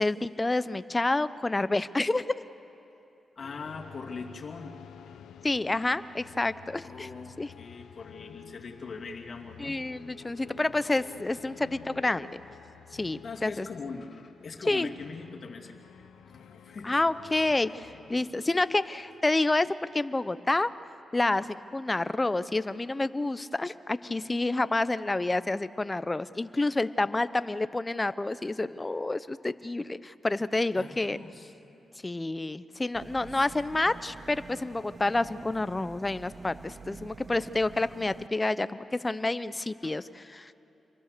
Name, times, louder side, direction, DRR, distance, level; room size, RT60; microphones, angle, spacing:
voice 1, 0.0-2.3 5.4-7.1 7.4-7.5 9.6-12.4 12.9-13.7 14.7-14.9 16.8-20.7 21.1-31.2 32.0-40.6, left 2 dB, 25° left, 14 dB, 0.9 m, -29 dB
sound 1, 3.4-20.2, left 8 dB, 85° left, 0.9 m, -51 dB
voice 2, 3.4-4.8 6.8-9.8 10.2-10.3 13.2-15.7 16.2-17.0 17.3-18.4 30.7-31.4 31.7-31.8 33.3-33.7 39.8-39.9, left 4 dB, 60° left, 1 dB, 2.6 m, -42 dB
sound 2, 32.9-38.3, right 4 dB, 50° right, 0.6 m, -48 dB
28.5 x 23.0 x 6.9 m, 2.9 s
cardioid pair, 55°, 0 cm